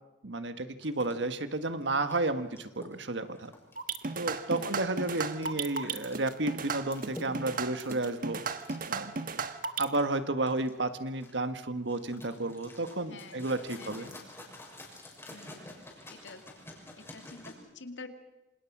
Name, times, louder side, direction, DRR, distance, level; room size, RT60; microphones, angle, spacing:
voice 1, 0.2-3.5 4.1-8.4 8.9-9.1 9.8-14.1, right 2 dB, 80° right, 9 dB, 1.6 m, -32 dB
sound 1, 0.8-17.5, left 1 dB, 15° left, 6.3 m, -50 dB
sound 2, 3.8-10.0, right 4 dB, 50° right, 1.4 m, -35 dB
voice 2, 4.5-5.1 5.5-5.6 13.1-14.3 15.3-15.8 16.1-16.4 17.0-18.1, left 3 dB, 85° left, 6 dB, 2.4 m, -49 dB
27.5 x 27.0 x 6.2 m, 1.0 s
head